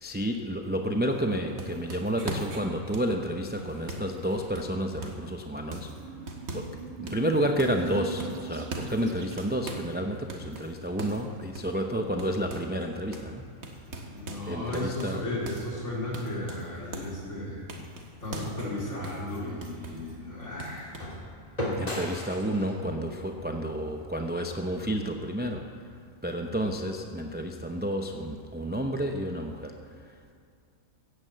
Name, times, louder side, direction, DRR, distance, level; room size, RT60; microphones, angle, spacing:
voice 1, 0.0-5.9 6.5-6.7 7.0-13.4 14.5-15.2 21.8-25.6 26.2-29.7, equal, 10° right, 3 dB, 0.5 m, -30 dB
sound 1, 1.1-5.3 5.7-6.8 7.1-7.9 8.2-10.0 10.3-12.9 13.1-13.3 13.6-17.2 17.7-20.2 20.6-21.0, right 2 dB, 70° right, 2.1 m, -41 dB
sound 2, 5.4-10.8, right 6 dB, 55° right, 1.5 m, -41 dB
voice 2, 14.0-17.6 18.2-20.9 23.4-23.7, left 1 dB, 55° left, -5 dB, 4.3 m, -35 dB
sound 3, 19.5-24.9, left 1 dB, 25° left, 2.7 m, -39 dB
15.5 x 9.8 x 8.0 m, 2.4 s
omnidirectional pair, 1.5 m